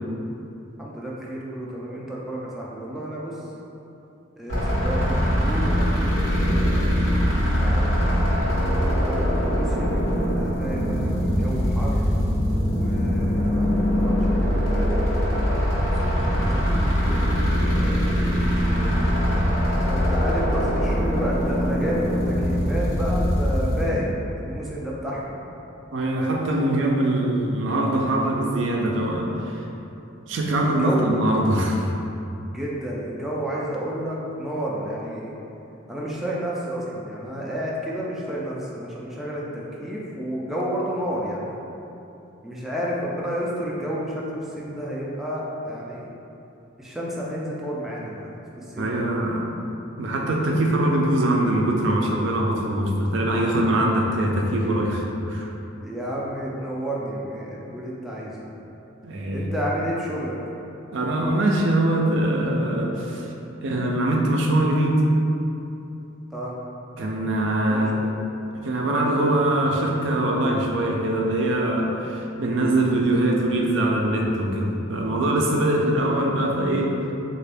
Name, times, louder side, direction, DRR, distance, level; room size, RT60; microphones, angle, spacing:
voice 1, 0.8-3.5 4.4-6.7 7.4-12.1 12.7-15.6 16.0-17.3 18.7-25.4 30.6-31.1 32.5-35.3 35.9-41.6 42.4-46.1 46.8-48.3 48.6-49.1 55.8-58.5 59.3-60.4 66.3-66.6 67.7-67.9, equal, ahead, -6 dB, 0.3 m, -31 dB
sound 1, 4.5-23.9, equal, 85° left, 1.1 m, -22 dB
voice 2, 25.9-29.6 30.3-31.9 48.8-49.4 50.0-55.5 59.0-59.5 60.9-63.3 63.6-65.0 67.0-68.1 68.6-76.9, right 1 dB, 65° right, -1 dB, 0.4 m, -22 dB
3.7 x 2.5 x 3.4 m, 2.9 s
head